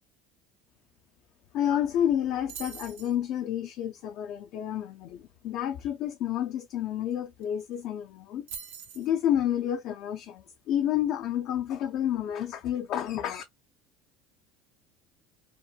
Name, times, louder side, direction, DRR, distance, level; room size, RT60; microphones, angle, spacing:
voice 1, 1.5-8.5 9.0-13.4, left 10 dB, 60° left, 0.3 m, -30 dB
sound 1, 2.5-3.2 7.1-7.2 7.4-7.8 8.5-9.1, right 7 dB, 85° right, 0.6 m, -42 dB
2.8 x 2.1 x 2.2 m
hypercardioid pair, 80°, 0 cm